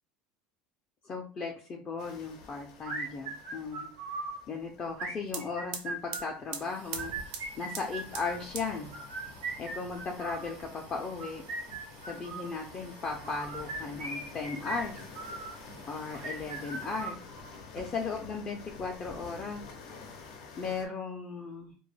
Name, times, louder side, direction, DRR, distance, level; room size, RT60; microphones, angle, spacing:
voice 1, 1.0-3.9 4.5-8.9 9.6-11.4 12.1-15.1 15.9-17.2 17.7-19.6 20.6-21.7, left 4 dB, 30° left, 1 dB, 0.4 m, -37 dB
sound 1, 2.0-20.9, left 4 dB, 85° left, 0.5 m, -50 dB
sound 2, 2.8-4.4 4.9-6.4 6.9-8.4 8.9-10.5 11.1-12.5 13.2-15.6 16.1-17.6, right 3 dB, 90° right, 1.1 m, -39 dB
sound 3, 4.9-5.0 5.2-17.2 17.6-18.4 18.7-19.7, right 6 dB, 70° right, 0.5 m, -47 dB
2.2 x 2.1 x 3.1 m, 0.39 s
supercardioid pair, 130°, 3 cm